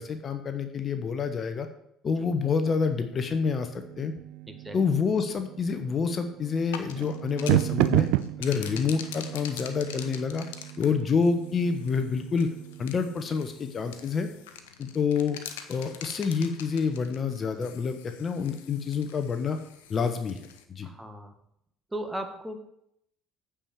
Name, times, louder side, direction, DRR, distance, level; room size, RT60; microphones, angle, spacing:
voice 1, 0.0-1.7 2.0-4.1 4.7-8.1 8.4-10.5 10.8-12.5 12.8-14.3 14.8-15.4 15.7-19.6 19.9-20.4 20.7-20.9, left 5 dB, 40° left, 8 dB, 1.1 m, -28 dB
sound 1, 2.9-13.7, right 17 dB, 70° right, 0.3 m, -32 dB
voice 2, 4.5-4.8 20.8-21.3 21.9-22.6, right 1 dB, 10° right, 6 dB, 1.6 m, -36 dB
sound 2, 6.5-20.6, left 8 dB, 80° left, 0.8 m, -45 dB
8.8 x 5.0 x 7.2 m, 0.76 s
hypercardioid pair, 65°, 0 cm